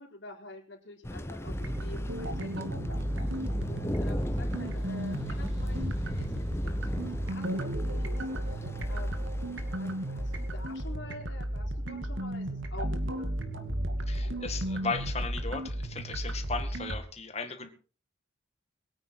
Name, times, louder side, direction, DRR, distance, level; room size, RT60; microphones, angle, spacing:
voice 1, 0.0-8.1 8.4-9.3 9.8-13.5 17.6-17.7, left 2 dB, 70° left, 0 dB, 4.2 m, -49 dB
Thunder, 1.0-10.8, left 1 dB, 15° left, 0.8 m, -38 dB
sound 1, 1.5-17.0, right 1 dB, 85° right, 2.2 m, -33 dB
sound 2, 4.4-16.7, equal, 55° right, 2.8 m, -53 dB
voice 2, 14.1-17.7, left 4 dB, 35° left, 7 dB, 2.1 m, -36 dB
22.5 x 9.1 x 4.6 m, 0.38 s
head